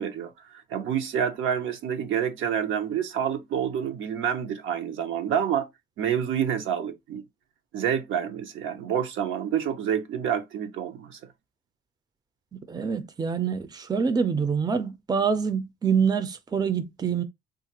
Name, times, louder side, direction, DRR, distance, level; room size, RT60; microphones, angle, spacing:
voice 1, 0.0-5.7 6.0-7.2 7.7-11.2, right 8 dB, 75° right, 0.7 m, -28 dB
voice 2, 12.7-17.2, right 6 dB, 20° right, 0.5 m, -26 dB
3.2 x 2.4 x 2.9 m
cardioid pair, 90°, 20 cm